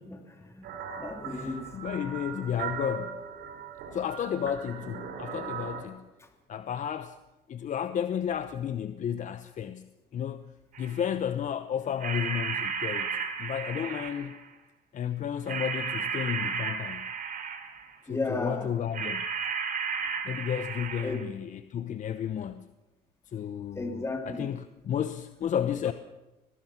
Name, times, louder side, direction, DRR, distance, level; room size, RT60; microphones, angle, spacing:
voice 1, 0.0-1.7 6.2-6.3 18.1-18.7 21.0-21.2 23.7-24.5, left 2 dB, 15° left, 2.9 m, -35 dB
sound 1, 0.6-5.8, right 7 dB, 85° right, 5.1 m, -39 dB
voice 2, 1.3-3.2 3.9-6.1 6.5-7.2 7.5-10.5 10.8-14.4 14.9-17.1 18.0-19.2 20.2-22.7 23.3-25.9, left 9 dB, 45° left, 0.9 m, -32 dB
sound 2, 10.7-11.0 12.0-14.4 15.5-17.9 18.9-21.2, right 6 dB, 55° right, 3.4 m, -33 dB
22.5 x 19.5 x 5.9 m
cardioid pair, 110°, 17 cm